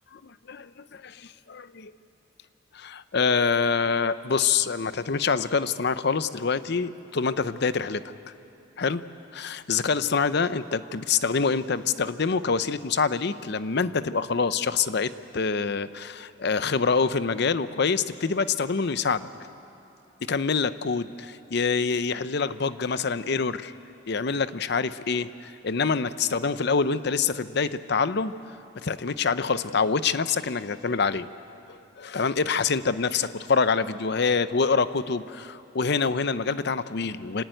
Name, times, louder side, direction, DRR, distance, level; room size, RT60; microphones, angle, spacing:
voice 1, 0.2-1.9 2.7-8.0 8.8-19.3 20.3-23.7 24.1-28.3 28.8-31.3 31.7-37.4, left 5 dB, 60° left, 14 dB, 0.7 m, -26 dB
26.0 x 18.5 x 9.0 m, 2.7 s
head